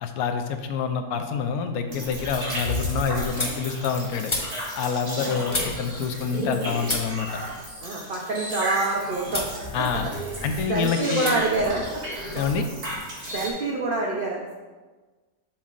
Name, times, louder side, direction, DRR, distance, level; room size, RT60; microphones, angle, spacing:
voice 1, 0.0-4.3 4.8-7.4 9.7-10.1 10.4-11.4 12.3-12.7, left 6 dB, 75° left, 6 dB, 1.0 m, -27 dB
sound 1, 0.6-1.1 1.5-6.6 6.8-8.9 9.3-9.6 9.9-10.7 11.2-11.4 11.6-12.7, left 2 dB, 25° left, 0.8 m, -35 dB
sound 2, 1.9-13.5, right 1 dB, 75° right, 2.6 m, -33 dB
voice 2, 7.8-9.5 9.7-10.1 10.4-12.0 13.3-14.5, right 2 dB, 55° right, -2 dB, 0.6 m, -27 dB
7.2 x 6.9 x 2.5 m, 1.3 s
omnidirectional pair, 1.7 m